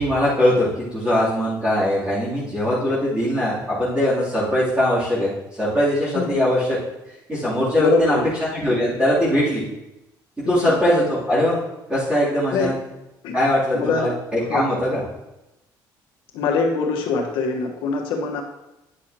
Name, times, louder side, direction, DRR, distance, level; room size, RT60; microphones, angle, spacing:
voice 1, 0.0-5.3 5.6-6.8 7.3-8.1 8.5-9.6 10.5-11.6 11.9-12.7 13.3-15.0, left 1 dB, 15° right, -10 dB, 3.1 m, -21 dB
voice 2, 6.1-6.5 7.8-8.3 10.4-10.7 12.5-12.7 13.2-13.3 13.7-14.1 14.5-14.6 16.3-18.4, left 4 dB, 90° left, 0 dB, 1.3 m, -23 dB
9.9 x 6.8 x 2.9 m, 0.95 s
cardioid pair, 115°, 8 cm